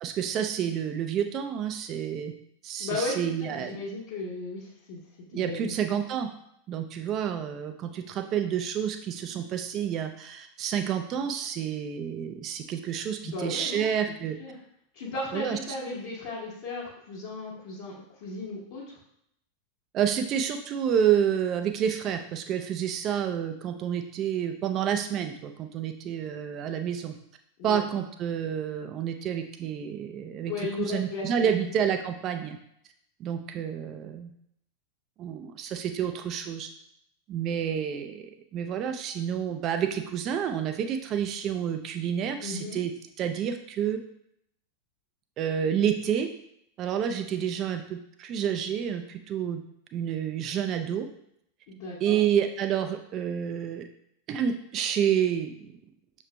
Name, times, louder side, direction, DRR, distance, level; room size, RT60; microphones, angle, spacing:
voice 1, 0.0-2.3 2.6-3.8 5.3-6.3 6.7-14.4 15.3-15.6 19.9-27.1 27.6-30.5 30.8-32.6 33.2-34.3 35.2-36.7 37.3-42.9 43.2-44.0 45.4-46.3 46.8-49.6 49.9-51.1 52.0-53.9 54.3-55.8, right 8 dB, 35° right, 7 dB, 0.4 m, -29 dB
voice 2, 2.8-5.0 5.3-6.0 13.2-13.9 14.4-14.6 14.9-17.9 18.2-19.0 27.6-28.0 30.5-31.7 42.4-42.8 51.7-52.2, left 3 dB, 50° left, -8 dB, 1.1 m, -35 dB
6.4 x 3.1 x 2.2 m, 0.74 s
figure-of-eight pair, 90°, 0 cm